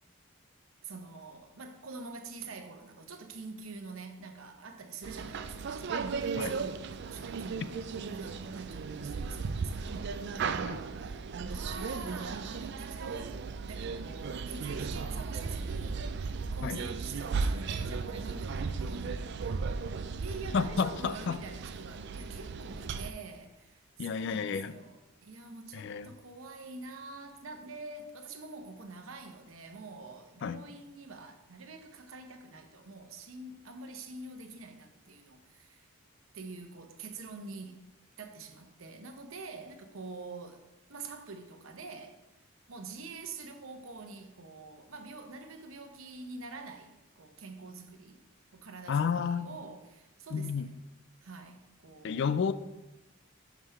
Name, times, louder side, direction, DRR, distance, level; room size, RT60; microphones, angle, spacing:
voice 1, 0.8-10.2 11.0-13.4 13.7-16.1 16.5-35.9 36.3-37.9 38.2-42.2 42.7-48.2 48.5-50.8 51.2-52.4, right 3 dB, 75° right, 0.8 m, -46 dB
sound 1, 5.0-23.1, right 4 dB, 55° right, 0.3 m, -36 dB
voice 2, 20.5-21.4 24.0-24.7 25.7-26.1 30.4-30.6 48.9-49.6 50.3-50.7 52.0-52.5, left 6 dB, 55° left, 0.3 m, -31 dB
5.6 x 4.8 x 5.5 m
head